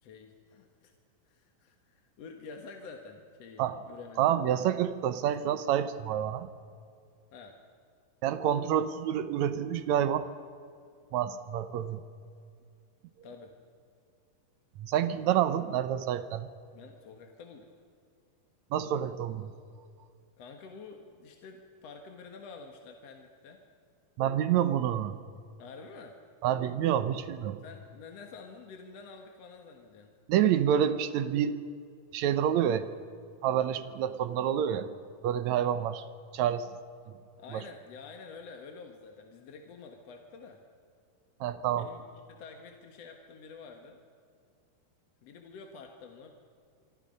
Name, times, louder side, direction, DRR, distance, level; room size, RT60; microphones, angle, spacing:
voice 1, 0.0-0.9 1.2-4.4 7.3-7.6 13.2-13.6 16.7-17.7 20.4-23.6 25.6-26.2 27.6-30.1 37.4-40.6 41.8-44.0 45.2-46.3, left 4 dB, 55° left, 3 dB, 2.3 m, -48 dB
voice 2, 4.2-6.5 8.2-10.3 11.1-12.0 14.8-16.5 18.7-19.5 24.2-25.2 26.4-27.6 30.3-31.6 32.1-32.9 33.4-34.9 35.2-36.0 36.3-36.7 37.5-37.6 41.4-41.9, right 10 dB, 70° right, 12 dB, 1.9 m, -28 dB
26.0 x 25.0 x 5.4 m, 2.3 s
omnidirectional pair, 4.0 m